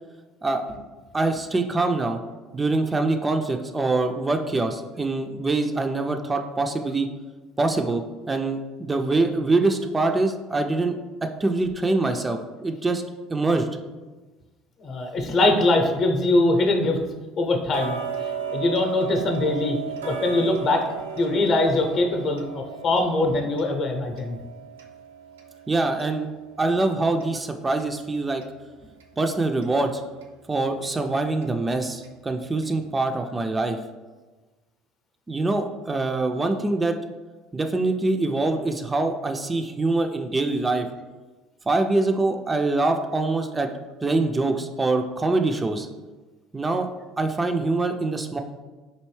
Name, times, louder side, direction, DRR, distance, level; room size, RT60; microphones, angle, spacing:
voice 1, 1.1-2.2 2.5-7.1 7.6-13.0 13.3-13.7 25.7-26.3 26.6-28.4 29.2-30.0 30.5-33.8 35.3-37.0 37.5-40.9 41.7-43.7 44.0-45.9 46.5-46.9 47.2-48.4, right 2 dB, 20° right, 5 dB, 0.3 m, -24 dB
voice 2, 14.8-17.0 17.4-19.8 20.1-20.8 21.2-24.4, left 2 dB, 45° left, 4 dB, 0.7 m, -22 dB
Tick-tock, 17.7-28.6 29.0-29.1 29.6-29.7 30.2-30.3 30.8-30.9 31.4-31.5 32.0-32.1 32.6-32.7, right 6 dB, 85° right, 0.4 m, -36 dB
4.3 x 2.6 x 3.1 m, 1.3 s
hypercardioid pair, 70°, 0 cm